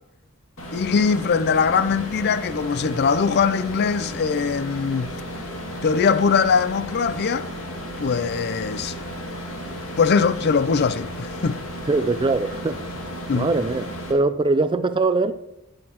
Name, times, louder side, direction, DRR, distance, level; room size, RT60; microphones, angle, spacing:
sound 1, 0.6-14.1, equal, 75° left, 2.3 m, -34 dB
voice 1, 0.7-5.1 5.8-7.5 8.0-8.9 10.0-11.6 13.3-13.5, left 5 dB, 50° left, 0.4 m, -21 dB
voice 2, 11.9-12.8 13.3-15.3, right 3 dB, 25° right, 0.4 m, -22 dB
17.5 x 6.5 x 3.0 m
head